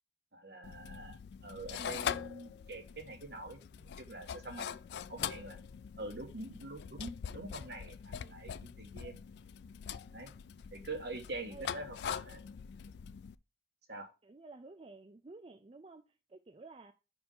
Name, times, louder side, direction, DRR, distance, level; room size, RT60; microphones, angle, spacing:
voice 1, 0.3-1.2 1.4-4.8 5.1-5.6 6.0-9.2 10.1-10.3 10.7-12.4 13.9-14.1, right 2 dB, 60° right, 1.5 m, -45 dB
sound 1, 0.6-13.4, left 8 dB, 65° left, 0.3 m, -43 dB
voice 2, 14.2-16.0 16.3-16.9, right 3 dB, 30° right, 0.4 m, -52 dB
5.4 x 4.7 x 5.3 m
head